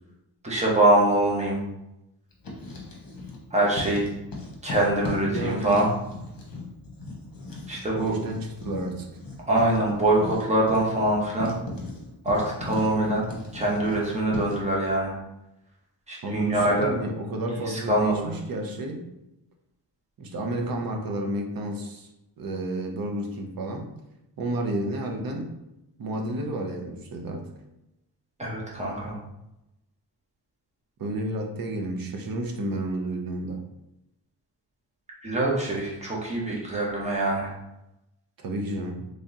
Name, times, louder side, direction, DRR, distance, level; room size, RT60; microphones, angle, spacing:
voice 1, 0.4-1.6 3.5-4.1 4.6-5.9 7.7-8.1 9.5-11.5 12.2-13.2 13.5-15.1 16.1-16.9 17.6-18.3 28.4-29.2 35.2-37.5, right 1 dB, 15° right, -4 dB, 0.9 m, -24 dB
Writing, 2.3-3.4 3.7-14.7, left 2 dB, 55° left, 1.0 m, -38 dB
voice 2, 5.3-5.8 8.0-9.1 16.2-19.1 20.2-22.1 22.4-23.9 24.4-25.6 26.0-27.5 31.0-33.6 38.4-39.1, right 1 dB, 55° right, 3 dB, 0.7 m, -31 dB
3.6 x 3.4 x 2.7 m, 0.90 s
wide cardioid pair, 160°, 42 cm